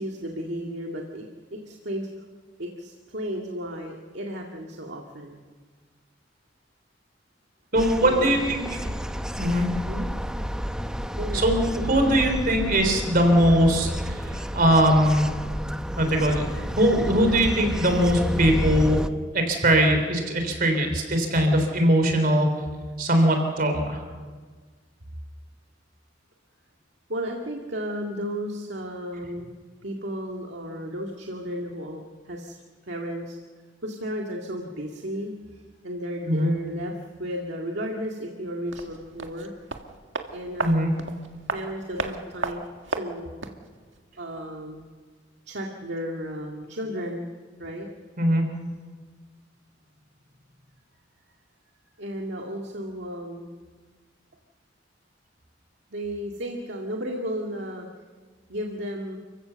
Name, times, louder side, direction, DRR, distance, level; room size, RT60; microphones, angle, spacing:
voice 1, 0.0-2.1 2.6-5.5 8.0-8.4 9.9-10.1 11.1-11.5 27.1-29.5 29.8-33.4 33.8-39.5 40.3-40.9 41.5-43.4 44.2-44.8 45.5-47.3 47.6-47.9 52.0-53.5 55.9-57.9 58.5-59.2, equal, 65° right, 1 dB, 2.1 m, -34 dB
sound 1, 7.7-19.1, equal, 5° right, 0.8 m, -30 dB
voice 2, 7.7-8.6 9.4-9.7 11.3-15.4 16.0-19.1 19.3-22.6 23.0-24.0 36.3-36.5 40.6-40.9 48.2-48.4, equal, 50° right, 5 dB, 3.5 m, -21 dB
sound 2, 38.7-43.7 43.9-44.0, right 3 dB, 85° right, 1.8 m, -34 dB
30.0 x 15.5 x 7.0 m, 1.5 s
head